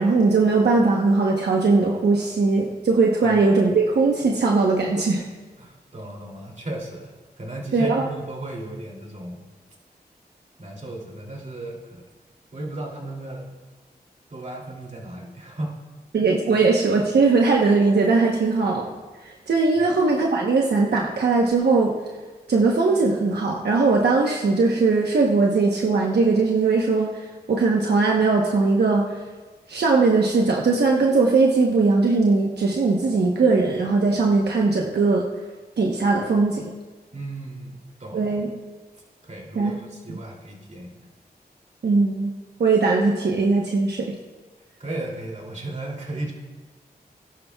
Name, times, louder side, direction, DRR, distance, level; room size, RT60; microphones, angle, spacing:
voice 1, 0.0-5.2 7.7-8.1 16.1-18.9 19.2-21.9 22.5-29.1 29.7-35.2 35.8-36.7 38.1-38.5 39.5-39.8 41.8-42.3 42.6-44.2, right 3 dB, 85° right, -1 dB, 1.0 m, -20 dB
voice 2, 5.6-7.1 7.4-9.4 10.6-12.0 12.5-13.5 14.3-15.8 16.5-16.7 19.8-19.9 37.1-38.3 39.2-41.0 44.8-46.3, right 2 dB, 45° right, -1 dB, 2.8 m, -35 dB
18.5 x 11.0 x 2.3 m, 1.3 s
wide cardioid pair, 75°, 17 cm